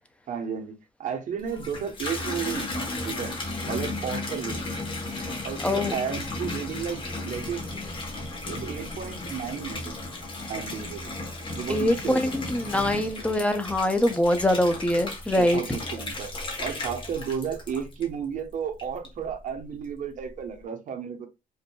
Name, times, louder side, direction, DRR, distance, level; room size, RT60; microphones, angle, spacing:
voice 1, 0.3-3.3 3.7-4.7 5.4-7.6 8.5-10.1 10.5-11.2 11.5-13.0 15.4-16.3 16.6-21.3, right 7 dB, 55° right, 1.0 m, -33 dB
Water tap faucet / Bathtub (filling or washing), 1.4-18.3 18.8-19.4, left 2 dB, 30° left, 1.1 m, -34 dB
voice 2, 5.6-5.9 11.7-15.6, left 1 dB, 10° left, 0.5 m, -24 dB
5.0 x 2.6 x 2.2 m
cardioid pair, 145°, 16 cm